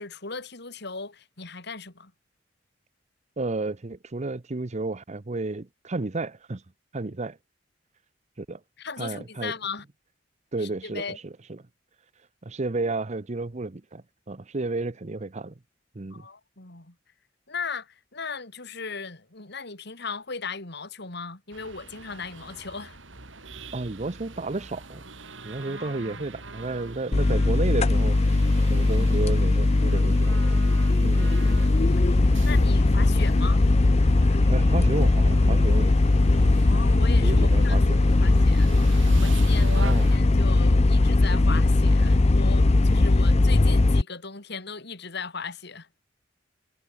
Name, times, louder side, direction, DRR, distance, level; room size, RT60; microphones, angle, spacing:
voice 1, 0.0-2.1 8.8-9.8 10.6-11.2 16.1-17.0 17.5-23.0 25.6-26.2 31.7-33.6 34.3-34.4 36.6-45.9, left 5 dB, 60° left, 3.7 m, -37 dB
voice 2, 3.4-6.6 6.9-7.4 8.4-8.6 9.0-9.5 10.5-11.6 12.4-15.5 15.9-16.3 23.7-25.0 25.4-28.2 28.7-30.6 31.0-31.4 33.1-33.3 34.5-36.0 36.4-36.5 37.2-38.1 39.6-40.1, right 2 dB, 40° right, 0.8 m, -32 dB
sound 1, 21.5-40.2, right 3 dB, 90° right, 4.8 m, -44 dB
sound 2, 27.1-44.0, left 2 dB, 35° left, 0.6 m, -19 dB
head